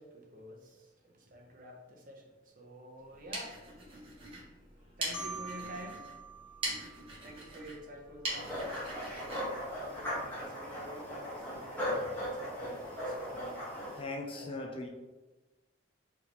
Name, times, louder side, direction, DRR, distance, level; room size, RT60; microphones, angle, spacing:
voice 1, 0.0-3.6 5.0-6.1 7.2-9.0 9.8-12.7 13.0-13.5 14.3-14.9, equal, 45° right, 1 dB, 0.8 m, -49 dB
sound 1, 3.0-10.5, right 1 dB, 30° right, 1.2 m, -43 dB
Marimba xylophone, 5.1-8.0, right 3 dB, 90° left, 0.9 m, -46 dB
sound 2, 8.3-14.0, equal, 10° left, 1.3 m, -38 dB
voice 2, 14.0-14.9, left 2 dB, 30° left, 2 dB, 0.4 m, -39 dB
4.6 x 3.4 x 2.9 m, 1.2 s
head